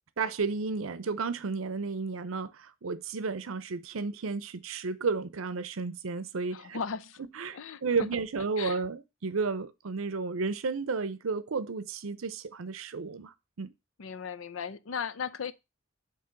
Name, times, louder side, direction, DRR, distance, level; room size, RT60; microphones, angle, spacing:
voice 1, 0.2-6.8 7.3-13.7, right 4 dB, 85° right, 0.6 m, -32 dB
voice 2, 6.5-7.2 7.5-8.1 8.6-8.8 14.0-15.5, left 6 dB, 80° left, 0.5 m, -37 dB
7.6 x 3.0 x 5.8 m
head